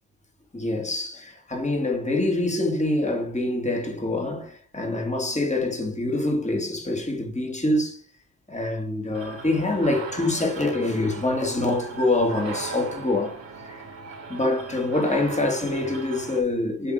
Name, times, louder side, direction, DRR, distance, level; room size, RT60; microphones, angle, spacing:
voice 1, 0.5-8.0 8.5-13.4 13.7-13.8 14.3-16.9, left 2 dB, 15° left, 2.3 m, -25 dB
sound 1, 9.1-16.4, right 4 dB, 70° right, 2.0 m, -38 dB
7.0 x 3.5 x 4.8 m
hypercardioid pair, 45°, 46 cm